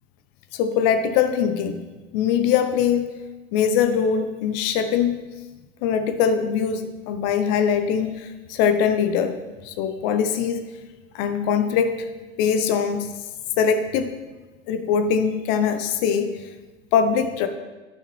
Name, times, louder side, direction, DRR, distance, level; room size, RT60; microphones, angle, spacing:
voice 1, 0.5-1.8 2.1-3.1 3.5-5.2 5.8-9.4 9.6-10.7 11.1-12.1 12.4-13.1 13.6-14.1 14.7-16.4 16.9-17.5, left 7 dB, 55° left, 8 dB, 0.7 m, -22 dB
9.0 x 5.8 x 3.2 m, 1.2 s
hypercardioid pair, 80°, 34 cm